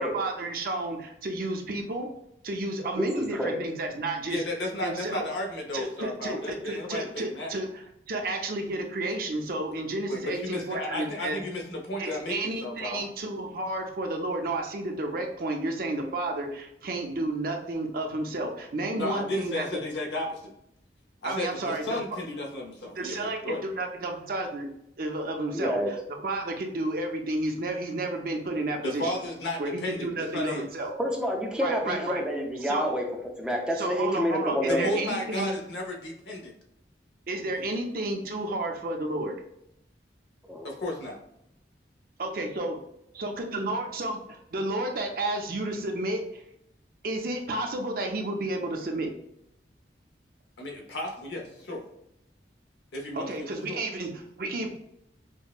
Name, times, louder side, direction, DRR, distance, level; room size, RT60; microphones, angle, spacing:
voice 1, 0.0-2.1 2.4-4.4 4.8-5.3 5.7-11.4 12.0-19.7 21.2-22.0 23.0-24.7 25.0-26.0 26.2-29.2 29.6-30.9 31.6-32.2 32.6-32.9 33.8-35.6 37.3-39.4 42.2-42.8 43.1-46.4 47.0-49.1 53.1-54.7, right 2 dB, 55° right, 3 dB, 0.5 m, -31 dB
voice 2, 3.0-3.6 25.5-25.9 31.0-33.1 33.4-35.0 40.5-40.7, equal, 5° right, 0 dB, 0.5 m, -28 dB
voice 3, 4.3-7.5 10.1-13.0 18.9-20.5 21.2-23.6 28.8-30.7 34.7-36.5 40.6-41.2 50.6-51.8 52.9-53.8, left 1 dB, 80° left, 1 dB, 0.7 m, -33 dB
5.2 x 2.1 x 2.4 m, 0.77 s
head